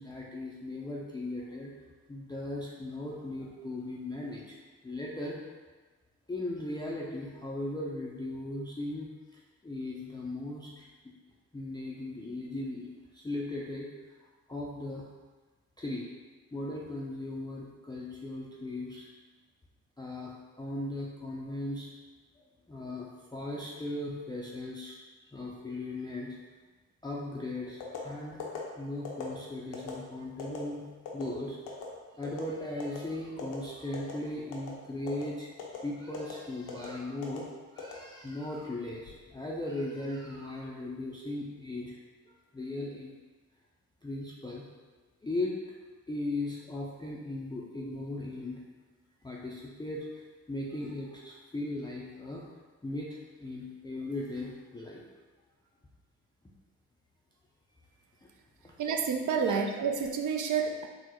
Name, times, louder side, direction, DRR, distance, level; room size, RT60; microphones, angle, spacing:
voice 1, 0.0-1.7 2.1-4.6 4.8-5.4 6.3-10.9 11.5-13.9 14.5-15.1 15.8-16.1 16.5-19.1 20.0-21.9 22.4-25.0 25.3-26.4 27.0-28.4 28.8-30.9 31.1-31.6 32.1-35.5 35.8-37.5 37.7-42.0 42.3-43.1 44.0-44.6 45.2-45.6 46.1-48.6 49.2-52.5 52.8-55.0 58.2-58.3 58.6-58.7 59.4-59.6, left 2 dB, 10° left, -4 dB, 0.4 m, -38 dB
sound 1, 27.8-28.0 28.4-28.6 29.0-29.3 29.7-29.9 30.4-30.6 31.0-31.2 31.7-31.8 32.2-32.5 32.8-33.0 33.4-33.6 33.9-34.2 34.5-34.7 35.1-35.2 35.6-35.8 36.1-36.3 36.7-36.9 37.2-37.4 37.8-38.4 38.9-39.1, left 8 dB, 75° left, 0.7 m, -40 dB
voice 2, 58.8-60.9, right 6 dB, 50° right, 4 dB, 0.5 m, -29 dB
3.8 x 2.0 x 3.0 m, 1.3 s
hypercardioid pair, 40°, 41 cm